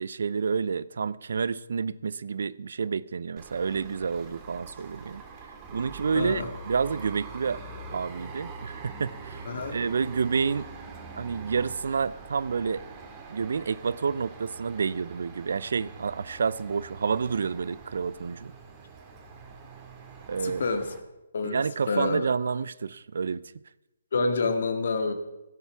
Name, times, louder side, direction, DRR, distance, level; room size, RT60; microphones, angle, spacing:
voice 1, 0.0-5.2 5.7-7.6 7.9-10.7 11.2-12.8 13.3-18.5 20.3-20.6 21.4-23.4, right 5 dB, 65° right, 0.6 m, -29 dB
sound 1, 3.4-21.0, right 4 dB, 25° right, 2.1 m, -44 dB
voice 2, 6.1-6.5 9.5-9.8 20.4-20.9 21.3-22.3 24.1-25.1, left 3 dB, 65° left, 1.9 m, -28 dB
16.0 x 8.2 x 6.0 m
hypercardioid pair, 150°, 0 cm